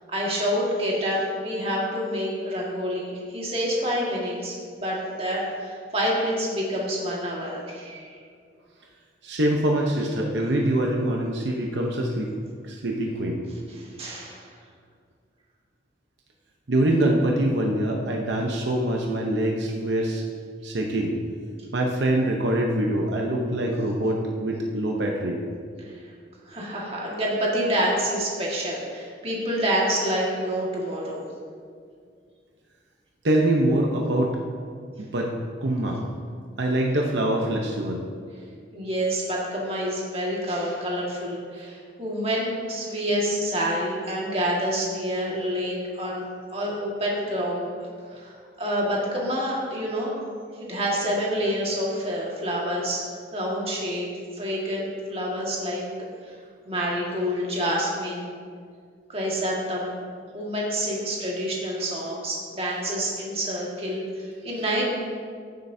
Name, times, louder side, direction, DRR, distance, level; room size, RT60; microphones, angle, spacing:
voice 1, 0.1-8.2 13.8-14.5 25.9-26.0 26.5-31.2 38.7-46.2 46.5-47.7 48.1-50.2 50.6-53.0 53.3-54.1 54.3-55.8 56.3-56.4 56.7-58.4 59.1-59.9 60.3-64.8, equal, 30° right, -4 dB, 1.8 m, -27 dB
voice 2, 9.2-12.3 12.6-13.4 16.7-20.2 20.6-21.1 21.7-25.4 33.2-34.4 35.0-35.3 35.6-36.0 36.6-38.0, right 1 dB, 75° right, 0 dB, 0.9 m, -24 dB
15.0 x 7.6 x 2.7 m, 2.1 s
head